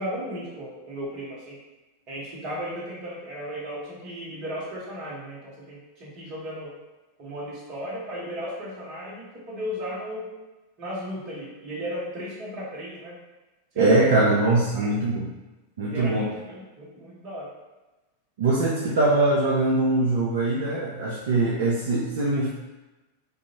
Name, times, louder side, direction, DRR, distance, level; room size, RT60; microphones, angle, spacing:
voice 1, 0.0-1.6 2.1-6.7 7.2-10.3 10.8-13.2 13.7-14.1 14.7-14.9 15.8-17.5, equal, 40° right, -5 dB, 0.9 m, -35 dB
voice 2, 13.8-15.3 15.8-16.2 18.4-22.5, right 2 dB, 60° right, -6 dB, 0.4 m, -22 dB
2.5 x 2.2 x 2.9 m, 1.1 s
figure-of-eight pair, 90°, 0 cm